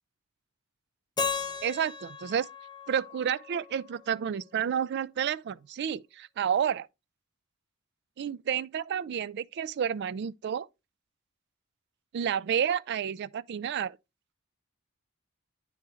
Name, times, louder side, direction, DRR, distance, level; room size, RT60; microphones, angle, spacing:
Keyboard (musical), 1.2-4.1, left 6 dB, 20° left, 0.8 m, -36 dB
voice 1, 1.6-2.5 2.9-6.9 8.2-10.7 12.1-14.0, right 8 dB, 50° right, 0.3 m, -30 dB
9.9 x 3.5 x 2.9 m
head